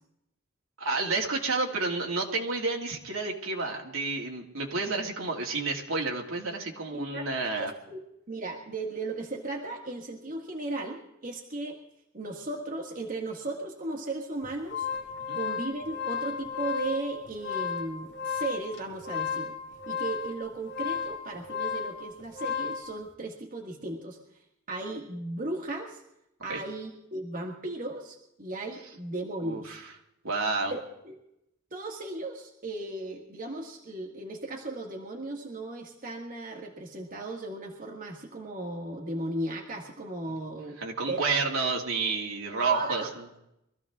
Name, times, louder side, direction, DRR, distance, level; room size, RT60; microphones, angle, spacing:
voice 1, 0.8-7.7 15.3-15.4 26.5-26.6 29.4-29.9 30.2-30.7 40.8-43.3, right 3 dB, 70° right, 0 dB, 2.4 m, -30 dB
voice 2, 6.9-8.0 8.3-11.8 12.1-14.9 15.3-19.5 19.9-24.2 24.7-26.0 26.4-29.8 30.7-30.8 31.0-31.2 31.7-40.8 41.1-41.2 42.6-43.1, right 2 dB, 40° right, 0 dB, 1.9 m, -36 dB
sound 1, 14.4-22.9, left 6 dB, 55° left, 1.9 m, -34 dB
23.5 x 14.5 x 3.7 m, 0.82 s
head